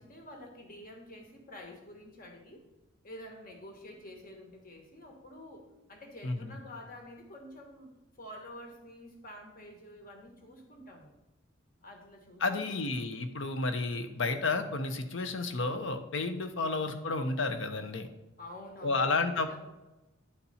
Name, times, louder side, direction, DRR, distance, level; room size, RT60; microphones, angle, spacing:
voice 1, 0.0-2.6 3.0-7.9 8.2-11.1 11.8-13.1 18.4-19.6, left 1 dB, 45° left, 2 dB, 1.3 m, -49 dB
voice 2, 12.4-18.1 18.8-19.6, left 3 dB, 60° left, 8 dB, 0.7 m, -31 dB
9.8 x 4.2 x 4.2 m, 1.0 s
head